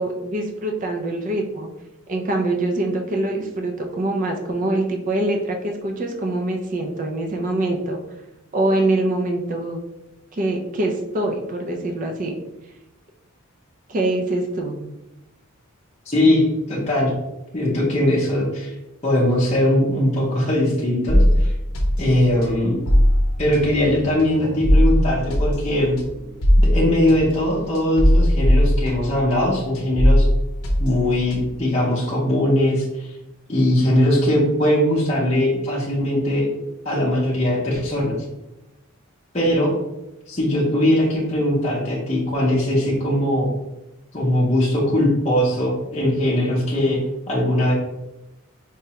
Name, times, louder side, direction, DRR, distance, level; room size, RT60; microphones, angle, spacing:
voice 1, 0.0-1.7 2.1-8.0 8.5-9.8 10.3-12.3 13.9-14.7, right 2 dB, 35° right, 3 dB, 0.4 m, -24 dB
voice 2, 16.1-17.1 17.5-18.8 19.0-21.5 22.0-22.8 23.4-26.0 26.6-30.3 30.8-33.2 33.5-36.5 36.8-38.2 39.3-39.7 40.3-43.5 44.1-47.0 47.3-47.7, left 1 dB, 30° left, -6 dB, 0.6 m, -20 dB
sound 1, 21.1-29.5 29.7-31.7, equal, 70° left, 0.7 m, -19 dB
4.7 x 2.1 x 2.8 m, 0.95 s
head